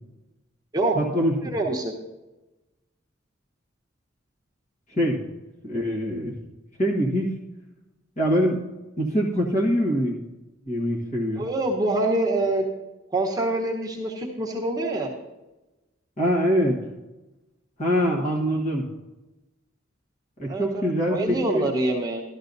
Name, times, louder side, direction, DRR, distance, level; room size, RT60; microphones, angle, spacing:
voice 1, 0.9-1.5 4.9-5.2 5.6-6.3 6.8-7.3 8.2-8.6 9.0-10.2 10.7-11.4 16.2-16.8 17.8-18.9 20.4-21.7, equal, 40° left, -2 dB, 1.5 m, -24 dB
voice 2, 1.5-1.9 11.4-12.6 13.1-15.1 20.4-20.8 21.1-22.2, right 2 dB, 20° right, -2 dB, 1.1 m, -25 dB
13.0 x 12.5 x 2.7 m, 1.1 s
head